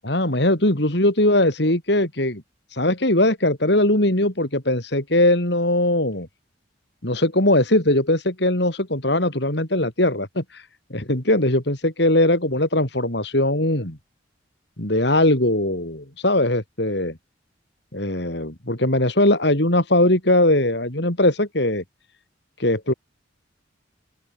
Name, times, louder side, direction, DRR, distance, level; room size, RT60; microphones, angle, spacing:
voice 1, 0.0-2.4 2.8-6.3 7.0-10.4 10.9-14.0 14.8-17.1 17.9-21.8 22.6-22.9, left 1 dB, 60° left, 3.8 m, -20 dB
open air
head